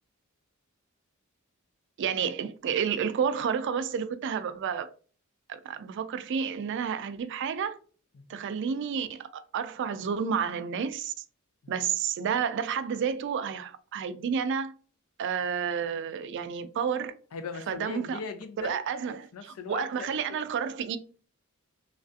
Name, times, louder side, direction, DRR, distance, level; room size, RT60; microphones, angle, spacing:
voice 1, 2.0-4.9 5.5-7.8 8.3-11.1 11.7-14.7 15.2-17.1 17.7-18.2 18.6-21.0, right 7 dB, 55° right, 0.3 m, -30 dB
voice 2, 17.3-20.4, left 5 dB, 80° left, 0.5 m, -40 dB
3.1 x 2.4 x 2.5 m
head